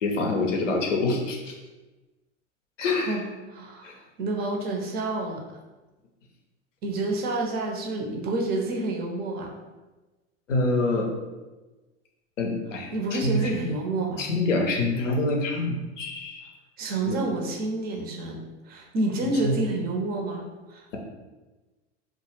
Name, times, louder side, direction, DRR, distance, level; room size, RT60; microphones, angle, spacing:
voice 1, 0.0-1.5 2.8-3.2 3.8-3.9 10.5-11.1 12.4-13.5 14.2-16.5 17.0-17.2 19.2-19.6, left 2 dB, 85° left, 1 dB, 0.5 m, -26 dB
voice 2, 2.8-3.2 3.5-3.9 4.2-5.4 6.8-9.5 12.9-14.2 16.8-18.4 18.7-21.0, right 2 dB, 25° right, 1 dB, 0.4 m, -29 dB
2.2 x 2.0 x 3.1 m, 1.2 s
figure-of-eight pair, 85°, 36 cm